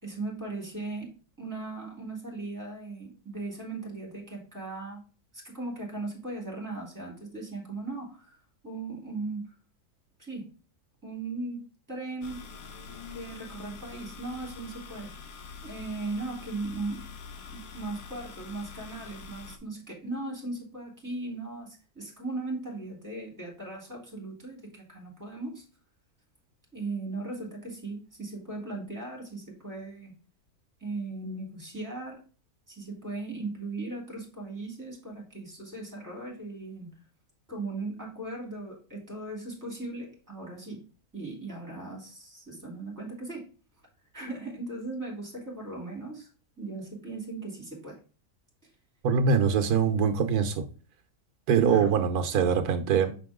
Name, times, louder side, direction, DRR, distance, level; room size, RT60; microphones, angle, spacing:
voice 1, 0.0-5.0 5.3-8.4 8.6-9.5 10.2-10.5 11.0-12.5 13.1-15.1 15.6-17.1 17.5-25.6 26.7-30.1 30.8-32.2 32.7-36.9 37.5-40.8 41.1-43.5 44.1-46.3 46.6-48.0 51.6-51.9, right 2 dB, 10° right, -2 dB, 3.6 m, -38 dB
sound 1, 12.2-19.6, left 5 dB, 70° left, 1.5 m, -45 dB
voice 2, 49.0-50.6 51.5-53.1, right 6 dB, 90° right, 7 dB, 1.4 m, -23 dB
6.4 x 6.0 x 3.6 m, 0.36 s
omnidirectional pair, 1.6 m